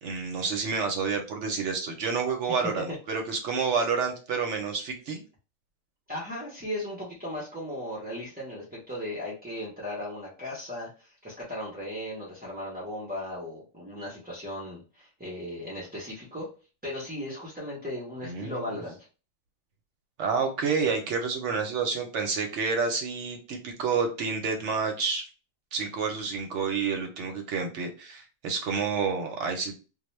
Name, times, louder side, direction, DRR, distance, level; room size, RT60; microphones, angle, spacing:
voice 1, 0.0-5.2 18.2-18.7 20.2-25.2 25.7-29.8, right 5 dB, 70° right, 4 dB, 0.8 m, -29 dB
voice 2, 2.5-2.8 6.1-16.5 16.8-19.0, left 1 dB, 10° right, -6 dB, 0.4 m, -37 dB
2.2 x 2.1 x 3.0 m, 0.34 s
omnidirectional pair, 1.4 m